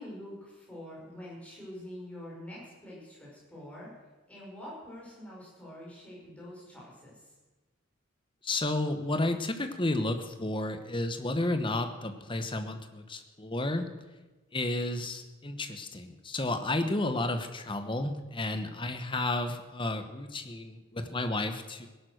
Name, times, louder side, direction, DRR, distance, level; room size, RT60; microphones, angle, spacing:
voice 1, 0.0-3.9 4.3-7.4, left 1 dB, 5° left, -5 dB, 6.0 m, -45 dB
voice 2, 8.4-13.9 14.5-21.9, left 2 dB, 25° left, 8 dB, 1.2 m, -32 dB
18.0 x 11.5 x 6.5 m, 1.2 s
head